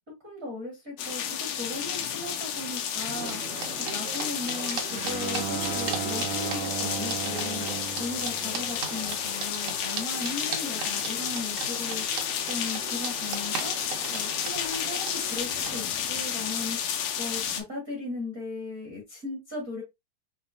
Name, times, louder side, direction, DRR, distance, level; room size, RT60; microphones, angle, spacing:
voice 1, 0.2-3.6 3.9-13.8 14.1-19.8, left 3 dB, 40° right, 1.1 m, -37 dB
sound 1, 1.0-17.6, left 8 dB, 85° left, 1.6 m, -31 dB
sound 2, 3.1-15.8, right 5 dB, 65° right, 2.0 m, -38 dB
Bowed string instrument, 4.9-9.3, right 8 dB, 90° right, 1.7 m, -36 dB
6.5 x 3.0 x 2.6 m
omnidirectional pair, 4.2 m